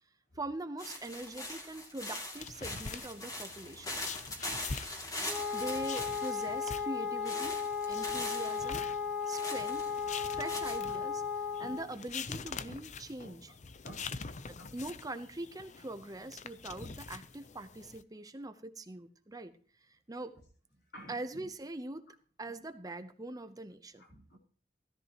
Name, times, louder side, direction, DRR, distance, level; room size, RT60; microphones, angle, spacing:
voice 1, 0.3-4.0 5.1-7.6 7.9-8.8 9.3-9.9 10.3-13.5 14.5-19.5 19.9-20.3 21.1-22.1 22.4-24.0, right 2 dB, 20° right, 9 dB, 0.8 m, -42 dB
sound 1, 0.8-6.7 7.3-8.7 9.3-10.8, left 1 dB, 20° left, 2.6 m, -42 dB
sound 2, 2.4-18.0, left 5 dB, 45° left, 0.6 m, -45 dB
voice 2, 4.4-5.2 10.2-10.3 10.9-11.0 11.6-11.7 13.8-14.1 14.6-14.8 20.9-21.5 23.3-23.4 24.0-24.4, equal, 65° left, -1 dB, 4.3 m, -53 dB
Wind instrument woodwind instrument, 5.3-11.9, left 6 dB, 5° right, 1.3 m, -35 dB
15.5 x 14.0 x 3.0 m, 0.43 s
head